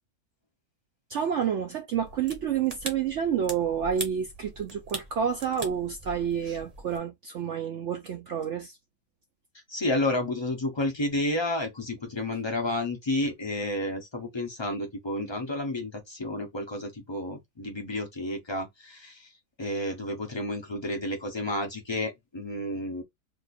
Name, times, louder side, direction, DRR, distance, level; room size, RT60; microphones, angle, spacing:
voice 1, 1.1-8.8, right 8 dB, 70° right, 0.7 m, -29 dB
sound 1, 1.9-7.0, right 2 dB, 30° right, 0.8 m, -41 dB
voice 2, 9.7-19.3 19.6-23.0, left 1 dB, 35° left, 0.4 m, -31 dB
2.7 x 2.4 x 4.1 m
omnidirectional pair, 1.7 m